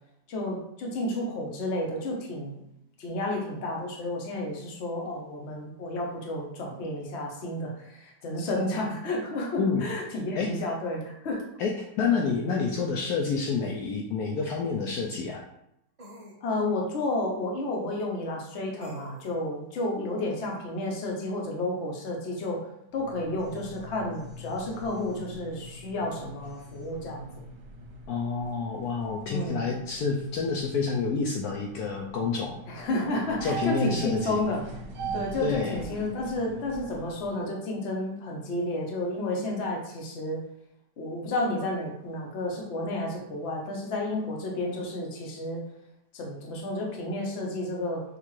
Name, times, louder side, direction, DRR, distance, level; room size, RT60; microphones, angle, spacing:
voice 1, 0.3-2.6 3.0-11.4 16.4-22.6 22.9-27.3 29.3-29.7 32.7-34.6 35.1-40.4 41.0-45.6 46.1-48.0, left 1 dB, 50° left, 0 dB, 1.0 m, -31 dB
voice 2, 9.6-9.9 10.3-10.5 11.6-15.4 28.1-32.6 33.4-34.4 35.4-35.8, left 5 dB, 70° left, 0 dB, 1.0 m, -28 dB
sound 1, 13.6-13.7 16.0-16.4 18.8-19.3, right 1 dB, 50° right, 0.4 m, -48 dB
sound 2, 22.9-37.3, right 3 dB, 90° right, 1.5 m, -42 dB
6.5 x 2.4 x 3.1 m, 0.79 s
omnidirectional pair, 1.8 m